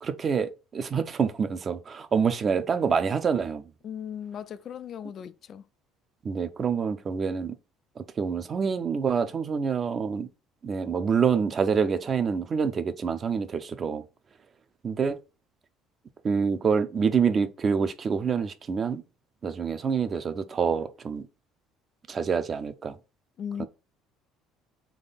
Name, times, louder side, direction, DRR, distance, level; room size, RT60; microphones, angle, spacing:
voice 1, 0.0-3.7 6.2-7.5 8.0-10.3 10.6-14.0 14.8-15.2 16.2-19.0 19.4-21.3 22.1-23.0 23.6-23.7, right 6 dB, 30° right, 0.5 m, -26 dB
voice 2, 3.8-5.7 23.4-23.7, left 8 dB, 45° left, 0.4 m, -37 dB
3.6 x 3.3 x 4.0 m
cardioid pair, 125°, 0 cm